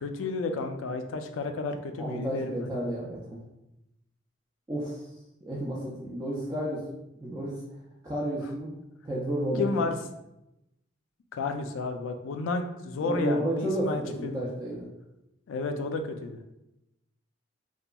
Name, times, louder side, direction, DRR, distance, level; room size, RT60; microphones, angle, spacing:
voice 1, 0.0-2.7 9.6-10.0 11.3-14.4 15.5-16.4, left 3 dB, 85° left, 6 dB, 0.3 m, -32 dB
voice 2, 2.0-3.4 4.7-5.1 5.4-6.8 7.2-7.6 8.0-8.7 9.0-9.9 13.0-14.9, right 1 dB, 20° right, -7 dB, 0.3 m, -31 dB
2.8 x 2.4 x 2.2 m, 0.89 s
head